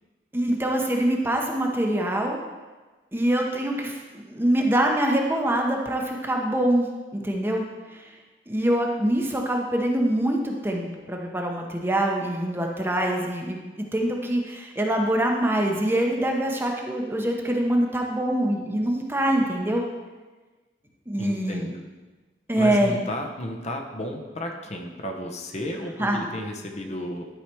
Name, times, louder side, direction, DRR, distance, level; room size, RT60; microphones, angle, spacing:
voice 1, 0.3-2.4 3.1-6.9 7.1-7.6 7.9-8.1 8.5-13.6 13.9-19.9 21.1-21.7 22.5-23.0 26.0-26.3, right 1 dB, 15° right, 1 dB, 0.9 m, -24 dB
voice 2, 21.2-21.8 22.6-27.3, left 1 dB, 40° left, 3 dB, 0.9 m, -33 dB
11.5 x 4.9 x 4.5 m, 1.3 s
head